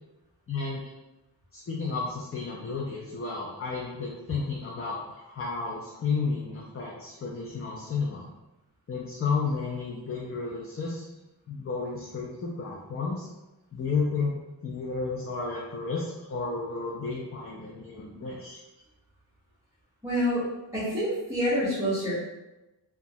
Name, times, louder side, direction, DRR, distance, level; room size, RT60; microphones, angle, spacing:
voice 1, 0.5-0.8 1.5-8.3 8.9-11.0 11.5-13.3 13.7-16.0 16.3-18.6, left 4 dB, 35° left, -3 dB, 0.4 m, -32 dB
voice 2, 20.0-20.5 20.7-22.1, equal, 5° right, -13 dB, 0.9 m, -27 dB
2.9 x 2.3 x 2.6 m, 1.0 s
wide cardioid pair, 110°, 46 cm